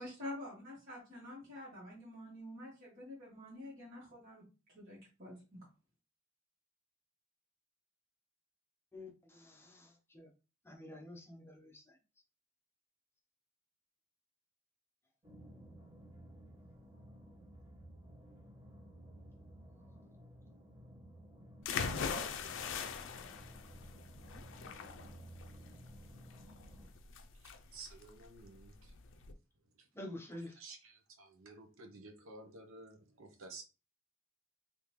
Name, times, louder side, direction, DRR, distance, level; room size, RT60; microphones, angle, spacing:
voice 1, 0.0-4.4 4.7-5.6, left 1 dB, 45° right, 1.5 m, -48 dB
voice 2, 8.9-10.3 10.6-12.0 29.9-30.6, left 1 dB, 10° left, 0.6 m, -49 dB
sound 1, 15.2-26.9, right 1 dB, 20° right, 1.2 m, -55 dB
sound 2, 21.6-29.3, left 6 dB, 65° left, 0.4 m, -41 dB
voice 3, 27.7-29.0 29.8-29.9 30.6-33.6, right 3 dB, 75° right, 0.8 m, -53 dB
3.6 x 2.6 x 3.1 m
head